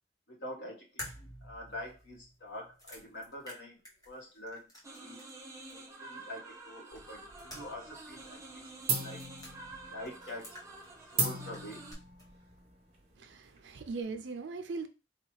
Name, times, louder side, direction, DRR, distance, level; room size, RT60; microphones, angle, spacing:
voice 1, 0.3-5.2 5.7-9.2 9.9-10.6 11.0-11.8, left 1 dB, 70° left, 1.5 m, -46 dB
sound 1, 1.0-5.4 5.7-5.8 7.0-8.0 8.2-8.3 9.0-9.5 10.1-11.1 11.4-12.3, equal, 20° left, 1.1 m, -50 dB
sound 2, 4.8-11.9, right 2 dB, 20° right, 0.7 m, -49 dB
sound 3, 6.9-7.8 8.1-8.5 8.9-14.0, right 4 dB, 35° right, 1.1 m, -37 dB
voice 2, 13.2-14.9, right 4 dB, 90° right, 0.5 m, -39 dB
4.1 x 2.4 x 3.1 m
head